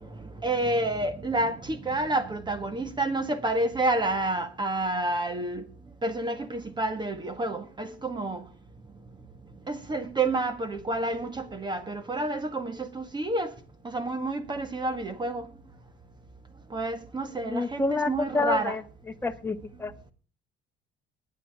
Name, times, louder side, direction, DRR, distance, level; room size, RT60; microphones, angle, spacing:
voice 1, 0.0-5.6 6.0-8.4 9.7-13.5 13.8-15.4 16.7-18.8, right 2 dB, 25° right, 1.6 m, -29 dB
voice 2, 17.4-18.8 19.2-19.9, left 3 dB, 10° left, 1.5 m, -28 dB
21.0 x 9.6 x 3.5 m
cardioid pair, 110°, 20 cm